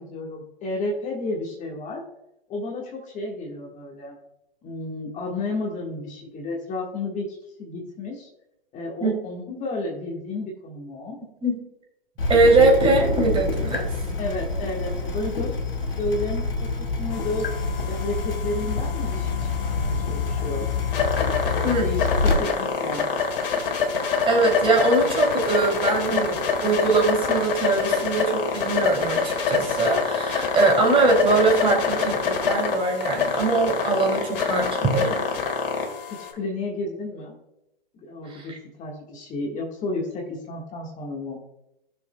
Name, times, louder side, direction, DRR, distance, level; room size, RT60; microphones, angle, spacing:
voice 1, 0.0-2.0 2.5-4.2 4.6-8.3 8.7-11.2 14.2-15.5 16.0-17.5 17.8-20.6 21.4-23.1 36.1-37.3 37.9-41.4, left 2 dB, 25° left, -1 dB, 1.5 m, -32 dB
Water tap faucet / Drip, 12.2-22.3, left 3 dB, 85° left, 2.1 m, -26 dB
voice 2, 12.3-14.0 21.6-21.9 22.2-22.3 24.2-35.2 38.3-38.6, right 3 dB, 20° right, 0 dB, 2.7 m, -22 dB
sound 1, 17.1-36.3, left 5 dB, 65° left, 1.9 m, -26 dB
16.0 x 6.7 x 2.2 m, 0.88 s
hypercardioid pair, 115°, 29 cm